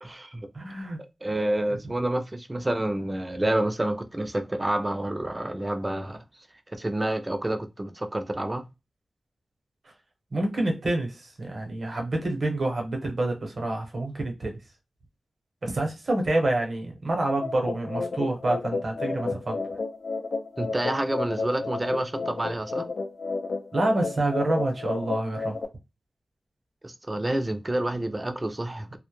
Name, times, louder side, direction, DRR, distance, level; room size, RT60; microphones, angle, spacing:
voice 1, 0.0-0.4 1.2-6.2 6.7-8.6 20.6-22.9 26.8-29.0, right 1 dB, 25° right, 0.4 m, -28 dB
voice 2, 0.5-1.0 10.3-14.6 15.6-19.6 23.7-25.6, right 2 dB, 60° right, 0.8 m, -27 dB
sound 1, 17.4-25.6, left 3 dB, 80° left, 0.4 m, -32 dB
2.0 x 2.0 x 3.0 m
wide cardioid pair, 75°, 0 cm